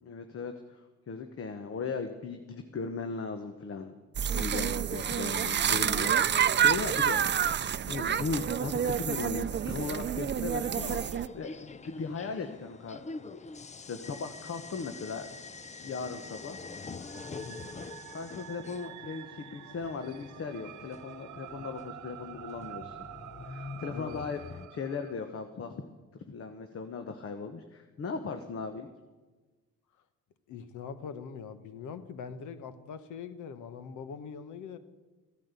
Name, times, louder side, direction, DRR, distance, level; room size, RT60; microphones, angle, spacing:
voice 1, 0.0-3.9 4.3-7.5 7.9-13.4 13.9-15.4 15.8-16.6 18.1-23.0 23.4-24.4 24.7-25.8 26.1-28.9, left 4 dB, 50° left, 7 dB, 1.2 m, -38 dB
sound 1, 4.1-11.3, right 9 dB, 35° right, 0.6 m, -28 dB
sound 2, 10.7-24.7, left 4 dB, 25° left, 0.5 m, -46 dB
sound 3, 17.0-25.1, right 13 dB, 75° right, 0.7 m, -48 dB
voice 2, 17.3-17.7 23.9-24.2 30.5-34.8, left 6 dB, 80° left, 12 dB, 1.3 m, -42 dB
15.5 x 10.5 x 8.2 m, 1.3 s
cardioid pair, 90°, 30 cm